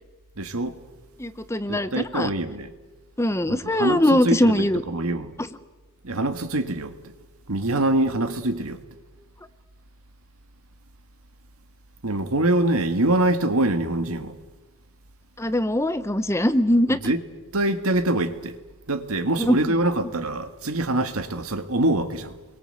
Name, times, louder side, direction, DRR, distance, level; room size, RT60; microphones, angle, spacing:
voice 1, 0.4-0.8 1.7-2.7 3.5-5.4 6.0-7.1 7.5-8.8 12.0-14.4 16.9-17.2 17.5-18.6 18.9-22.3, right 1 dB, 80° right, 1.8 m, -24 dB
voice 2, 1.2-2.3 3.2-4.8 15.4-17.1 19.4-19.6, left 1 dB, 10° left, 0.9 m, -21 dB
29.5 x 23.0 x 7.9 m
head